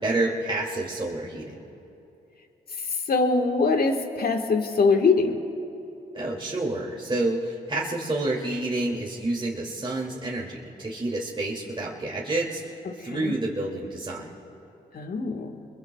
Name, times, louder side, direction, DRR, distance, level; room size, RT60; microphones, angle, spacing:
voice 1, 0.0-1.6 6.1-14.2, right 2 dB, 25° right, -4 dB, 2.5 m, -29 dB
voice 2, 3.1-5.4 12.9-13.3 14.9-15.6, left 4 dB, 55° left, 4 dB, 1.6 m, -23 dB
25.0 x 22.0 x 2.3 m, 2.8 s
supercardioid pair, 50°, 19 cm